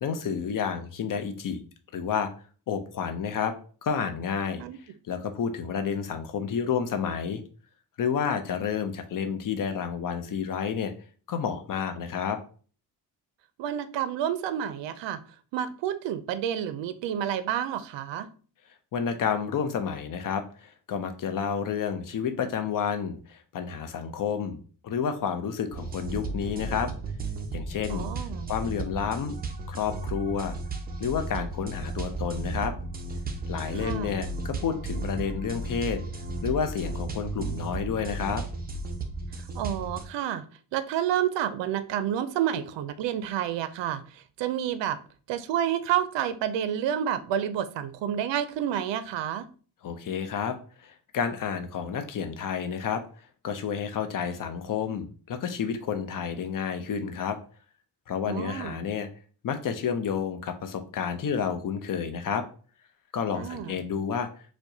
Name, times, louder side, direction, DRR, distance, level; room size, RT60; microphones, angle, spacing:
voice 1, 0.0-1.6 1.9-2.3 2.7-3.5 3.8-4.6 5.1-7.4 8.0-10.9 11.3-12.4 18.9-24.6 24.8-26.9 27.5-28.1 28.5-29.3 29.7-30.5 31.0-32.7 33.5-36.0 36.4-38.4 49.8-53.0 53.4-57.4 58.1-59.1 59.4-62.4 63.1-64.3, left 7 dB, 45° left, 8 dB, 0.6 m, -30 dB
voice 2, 13.6-15.2 15.5-18.3 27.9-28.5 33.7-34.1 39.5-40.4 40.7-45.0 45.3-49.5 58.3-58.8 63.3-63.8, right 10 dB, 70° right, 12 dB, 0.5 m, -29 dB
sound 1, 25.7-40.1, right 2 dB, 20° right, 0.5 m, -34 dB
4.5 x 2.2 x 2.7 m, 0.41 s
cardioid pair, 105°, 45 cm